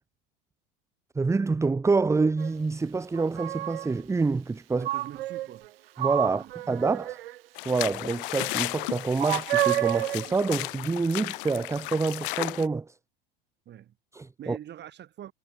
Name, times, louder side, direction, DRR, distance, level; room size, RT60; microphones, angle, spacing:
voice 1, 1.1-4.9 6.0-7.2 7.6-13.0 14.1-14.6, right 4 dB, 10° right, 0.9 m, -27 dB
sound 1, 2.4-2.5 3.2-3.9 4.8-5.7 6.0-7.4 9.2-10.3, right 15 dB, 75° right, 1.0 m, -29 dB
voice 2, 4.7-5.7 6.3-6.5 13.7-14.0 14.4-15.3, right 11 dB, 35° right, 5.9 m, -44 dB
sound 2, 7.6-12.7, left 24 dB, 65° left, 1.2 m, -34 dB
hypercardioid pair, 95°, 29 cm